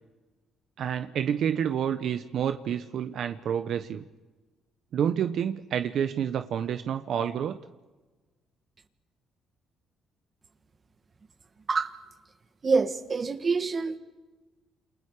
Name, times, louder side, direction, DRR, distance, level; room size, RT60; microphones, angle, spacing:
voice 1, 0.8-4.0 4.9-7.6, right 8 dB, 65° right, 1.1 m, -29 dB
voice 2, 12.6-14.0, right 4 dB, 35° right, 1.9 m, -26 dB
29.0 x 28.5 x 5.0 m
cardioid pair, 90°, 0 cm